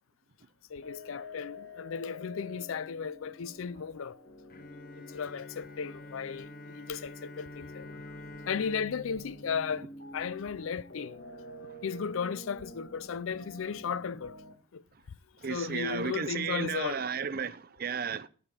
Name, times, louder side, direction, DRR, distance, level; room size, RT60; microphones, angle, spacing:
voice 1, 0.7-4.2 5.0-8.0 8.5-9.9 10.1-11.2 11.8-14.3 14.7-14.8 15.5-17.0, left 6 dB, 75° left, 0.4 m, -35 dB
sound 1, 0.8-14.5, left 1 dB, 60° left, 1.5 m, -49 dB
Bowed string instrument, 4.5-10.7, left 1 dB, 45° left, 0.8 m, -48 dB
voice 2, 15.4-18.3, right 6 dB, 45° right, 0.5 m, -33 dB
14.0 x 5.0 x 5.5 m
head